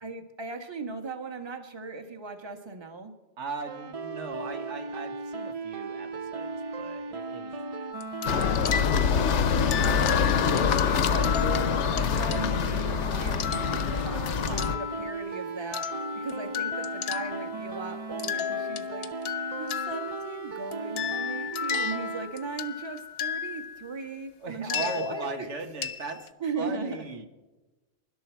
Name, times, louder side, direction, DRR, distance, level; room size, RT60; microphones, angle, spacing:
voice 1, 0.0-3.1 8.6-9.0 9.5-15.9 16.1-19.1 19.6-25.5 26.4-27.1, right 3 dB, 25° right, 6 dB, 1.4 m, -38 dB
voice 2, 3.4-7.6 8.3-8.7 9.5-9.8 11.0-11.3 14.4-14.7 24.4-26.3 26.6-27.3, right 4 dB, 85° right, 6 dB, 1.6 m, -38 dB
sound 1, 3.6-22.3, right 4 dB, 40° right, 0.6 m, -37 dB
sound 2, 7.9-15.4 15.7-17.9 18.2-23.9 24.7-26.3, left 8 dB, 65° left, 0.9 m, -34 dB
sound 3, 8.2-14.8, left 7 dB, 85° left, 1.1 m, -25 dB
24.0 x 12.0 x 4.5 m, 1.1 s
omnidirectional pair, 1.2 m